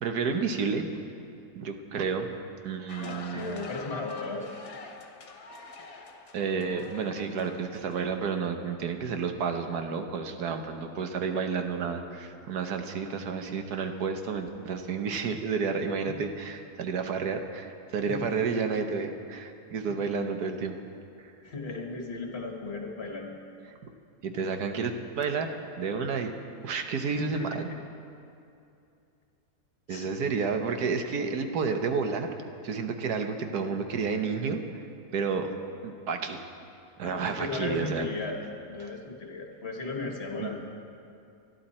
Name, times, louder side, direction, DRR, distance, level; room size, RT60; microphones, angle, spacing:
voice 1, 0.0-0.9 1.6-2.3 2.6-3.7 6.3-20.8 23.8-23.9 24.2-25.5 25.8-26.3 26.6-27.6 29.9-32.4 32.6-34.6 35.1-35.5 35.8-36.4 37.0-38.1 40.4-40.5, right 5 dB, 85° right, 6 dB, 1.6 m, -30 dB
sound 1, 2.9-8.5, left 4 dB, 65° left, 1.6 m, -46 dB
voice 2, 3.0-4.5 16.1-16.2 18.0-18.2 19.9-20.0 21.4-23.4 27.1-27.6 29.9-30.1 37.0-38.4 38.7-40.6, left 3 dB, 40° left, 1 dB, 1.8 m, -36 dB
24.0 x 11.0 x 4.3 m, 2.6 s
omnidirectional pair, 1.6 m